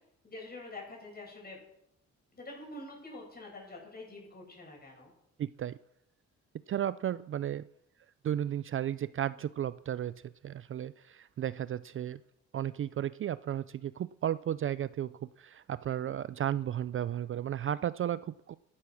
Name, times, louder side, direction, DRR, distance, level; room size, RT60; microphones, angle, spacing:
voice 1, 0.2-1.6 2.3-5.1, left 2 dB, 30° left, -1 dB, 7.8 m, -46 dB
voice 2, 5.4-5.8 6.7-7.7 8.2-12.2 12.5-18.6, right 10 dB, 45° right, 16 dB, 0.4 m, -34 dB
13.0 x 12.0 x 6.2 m, 0.78 s
cardioid pair, 90°, 30 cm